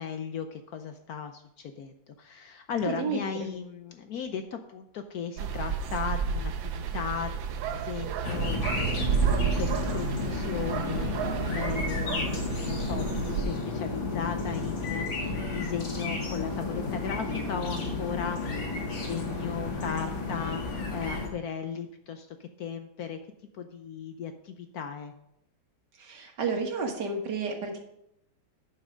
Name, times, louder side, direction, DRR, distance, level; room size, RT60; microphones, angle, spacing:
voice 1, 0.0-18.6 18.9-23.2 23.5-25.1, left 7 dB, 65° left, 7 dB, 1.0 m, -37 dB
voice 2, 2.9-3.5 26.0-27.8, right 4 dB, 65° right, 3 dB, 2.0 m, -31 dB
sound 1, 5.4-13.4, right 7 dB, 85° right, 1.5 m, -31 dB
sound 2, 8.2-21.3, left 3 dB, 90° left, 2.8 m, -32 dB
11.0 x 5.7 x 5.1 m, 0.78 s
omnidirectional pair, 2.0 m